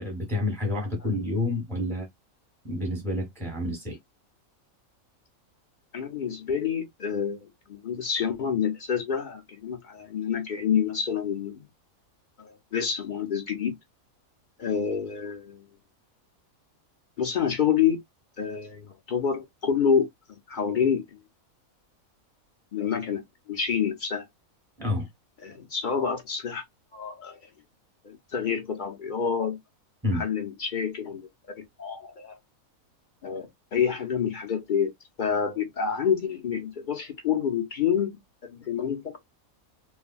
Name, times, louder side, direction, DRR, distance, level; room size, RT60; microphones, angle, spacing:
voice 1, 0.0-2.1 2.6-4.0 24.8-25.1 30.0-30.3, left 1 dB, ahead, 0.9 m, -29 dB
voice 2, 5.9-11.7 12.4-13.7 14.6-15.7 17.2-18.0 18.4-21.0 22.7-23.2 23.5-24.3 25.4-26.6 26.9-27.4 28.0-29.6 30.1-31.3 31.8-32.4 33.2-34.9 35.2-39.2, left 7 dB, 55° left, 0.5 m, -28 dB
3.2 x 2.1 x 2.3 m
omnidirectional pair, 1.5 m